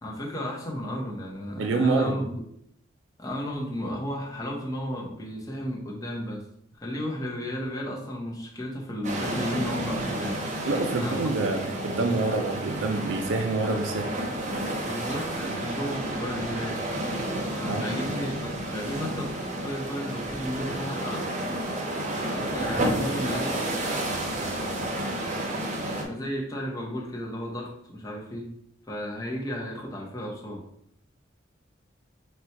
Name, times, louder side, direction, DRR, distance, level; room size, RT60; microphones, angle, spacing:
voice 1, 0.0-2.3 3.2-6.4 6.7-10.4 11.0-11.3 14.8-16.8 17.6-19.3 19.6-21.3 22.3-23.7 26.0-28.5 28.9-30.6, equal, 20° left, -2 dB, 0.8 m, -33 dB
voice 2, 1.6-2.2 10.7-14.2 17.7-17.8, right 3 dB, 75° right, 3 dB, 0.5 m, -26 dB
sound 1, 9.0-26.0, right 1 dB, 40° right, 0.7 m, -31 dB
4.1 x 2.3 x 4.4 m, 0.72 s
head